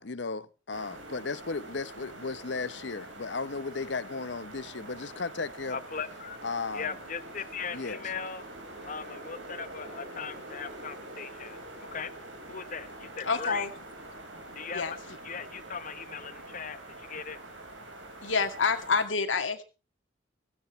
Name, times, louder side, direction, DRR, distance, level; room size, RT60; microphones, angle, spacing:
voice 1, 0.0-5.8 6.4-6.9 7.7-8.0, left 4 dB, 65° left, 0.8 m, -35 dB
sound 1, 0.7-19.1, right 1 dB, 85° right, 4.9 m, -45 dB
voice 2, 5.7-6.4 6.7-8.4 8.8-12.1 12.5-13.7 14.5-15.0 15.2-17.4, left 6 dB, 40° left, 1.0 m, -39 dB
voice 3, 13.2-13.7 14.7-14.9 18.2-19.6, left 4 dB, 85° left, 2.1 m, -27 dB
16.5 x 16.0 x 3.2 m
head